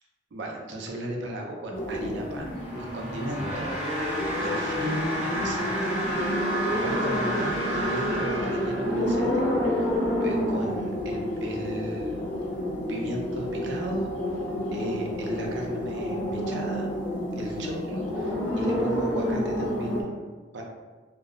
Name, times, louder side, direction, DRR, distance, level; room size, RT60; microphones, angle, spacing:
voice 1, 0.3-3.7 4.0-6.0 6.6-9.9 10.2-12.2 12.9-14.1 14.7-16.9 17.3-20.6, right 1 dB, 75° right, 0 dB, 0.4 m, -35 dB
sound 1, 1.7-20.0, left 1 dB, 75° left, 0.6 m, -30 dB
sound 2, 2.3-9.3, equal, 10° right, 0.7 m, -32 dB
sound 3, 3.4-4.6 4.8-10.7, right 1 dB, 25° left, 0.8 m, -34 dB
2.5 x 2.0 x 2.5 m, 1.4 s
head